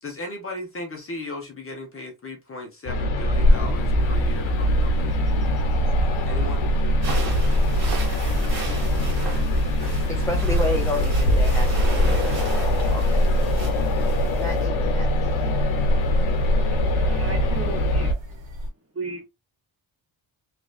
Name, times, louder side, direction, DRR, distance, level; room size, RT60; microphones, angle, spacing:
voice 1, 0.0-5.2 6.2-6.7, left 2 dB, 30° left, 1.0 m, -36 dB
sound 1, 2.9-18.1, equal, 90° left, 0.8 m, -23 dB
sound 2, 3.3-18.7, left 1 dB, 70° right, 1.7 m, -28 dB
sound 3, 7.0-14.7, left 1 dB, 50° right, 1.7 m, -28 dB
voice 2, 10.1-12.4 12.6-13.5 14.4-15.8, left 2 dB, 5° left, 0.5 m, -32 dB
voice 3, 16.7-18.1 18.9-19.3, right 3 dB, 30° right, 1.3 m, -35 dB
3.2 x 3.0 x 2.4 m
cardioid pair, 120°, 47 cm